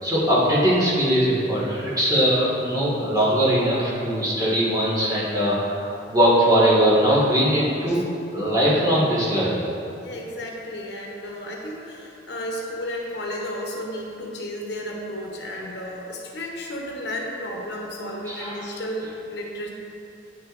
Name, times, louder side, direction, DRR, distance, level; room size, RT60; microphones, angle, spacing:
voice 1, 0.0-8.0 8.3-9.6 18.3-19.1, equal, 20° right, -8 dB, 1.6 m, -21 dB
voice 2, 10.0-19.7, left 1 dB, 65° left, -1 dB, 1.0 m, -33 dB
9.5 x 6.2 x 2.5 m, 2.7 s
head